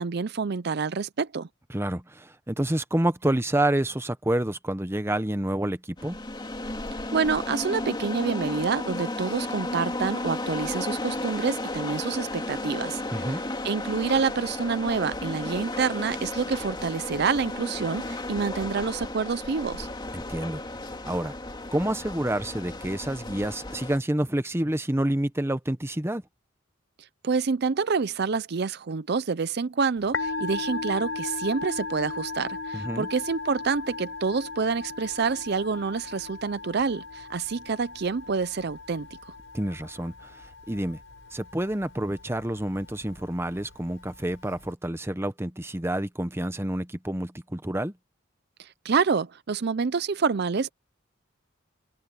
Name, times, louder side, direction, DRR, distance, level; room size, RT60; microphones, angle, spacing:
voice 1, 0.0-1.5 7.1-13.0 13.6-19.9 27.2-39.1 48.6-50.7, right 5 dB, 55° right, 0.5 m, -27 dB
voice 2, 1.7-6.2 13.1-13.4 20.1-20.6 21.0-21.3 21.7-26.2 32.7-33.1 39.5-41.0 41.3-47.9, right 1 dB, 10° right, 0.9 m, -28 dB
sound 1, 6.0-24.0, left 2 dB, 20° left, 2.8 m, -34 dB
Musical instrument, 30.0-44.7, left 3 dB, 65° left, 6.8 m, -37 dB
open air
head